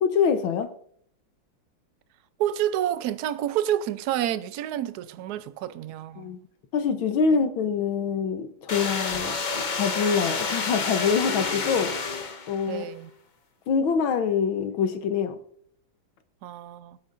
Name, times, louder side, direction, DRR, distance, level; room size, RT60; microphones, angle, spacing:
voice 1, 0.0-0.7 6.2-6.4 6.7-9.4 9.7-11.9 12.5-12.9 13.7-15.4, left 6 dB, 80° left, 1.7 m, -25 dB
voice 2, 2.4-6.3 12.7-13.1 16.4-17.0, right 11 dB, 70° right, 1.0 m, -29 dB
sound 1, 8.7-12.7, left 4 dB, 60° left, 0.4 m, -29 dB
24.0 x 8.6 x 2.6 m
omnidirectional pair, 2.2 m